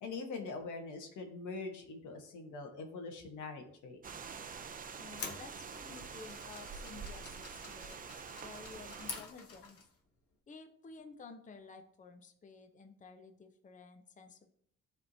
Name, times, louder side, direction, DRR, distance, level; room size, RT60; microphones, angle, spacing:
voice 1, 0.0-4.0, left 4 dB, 80° left, 4 dB, 1.2 m, -43 dB
sound 1, 4.0-9.2, right 6 dB, 30° right, 0.4 m, -46 dB
voice 2, 5.0-8.0 8.4-9.8 10.5-14.5, left 4 dB, 25° left, 6 dB, 0.6 m, -53 dB
sound 2, 5.1-10.0, left 4 dB, 50° left, 1.2 m, -48 dB
10.5 x 3.5 x 2.7 m, 0.67 s
cardioid pair, 90°, 30 cm